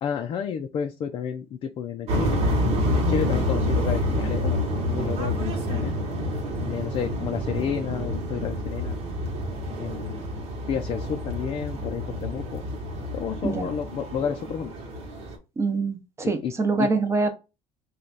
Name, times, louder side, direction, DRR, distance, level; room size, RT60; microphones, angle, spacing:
voice 1, 0.0-2.4 3.0-4.6 4.9-6.0 6.7-8.9 9.8-10.3 10.7-12.6 13.1-14.7 16.2-16.5 16.8-16.9, left 7 dB, 40° left, 0.4 m, -31 dB
sound 1, 2.1-15.4, left 1 dB, 55° right, 1.1 m, -28 dB
voice 2, 15.6-16.0 16.3-17.3, right 4 dB, 20° right, 0.8 m, -24 dB
3.2 x 2.3 x 3.9 m
cardioid pair, 115°, 12 cm